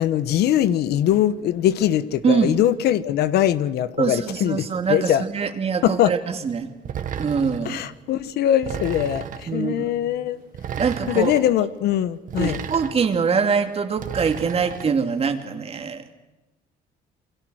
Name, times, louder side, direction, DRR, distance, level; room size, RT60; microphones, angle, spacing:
voice 1, 0.0-4.6 4.9-5.2 5.8-6.1 7.6-10.4 11.1-12.6, left 11 dB, 75° left, 1.2 m, -21 dB
voice 2, 2.2-2.6 4.0-6.7 7.2-7.8 9.5-10.0 10.8-11.3 12.4-16.0, right 5 dB, 35° right, 2.6 m, -24 dB
sound 1, 6.9-7.7 8.6-9.5 10.5-11.4 12.3-13.2 14.0-14.9, right 8 dB, 50° right, 1.8 m, -33 dB
28.5 x 23.5 x 6.4 m
cardioid pair, 110°, 17 cm